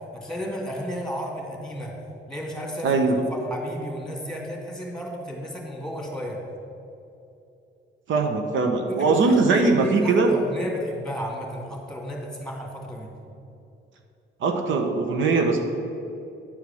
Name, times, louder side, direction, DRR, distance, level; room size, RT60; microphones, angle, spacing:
voice 1, 0.1-1.9 2.3-6.4 8.9-13.1, equal, 5° left, -1 dB, 2.3 m, -33 dB
voice 2, 2.8-3.2 8.1-10.3 14.4-15.6, right 3 dB, 75° right, 4 dB, 1.0 m, -21 dB
10.5 x 4.7 x 7.0 m, 2.8 s
cardioid pair, 90°, 20 cm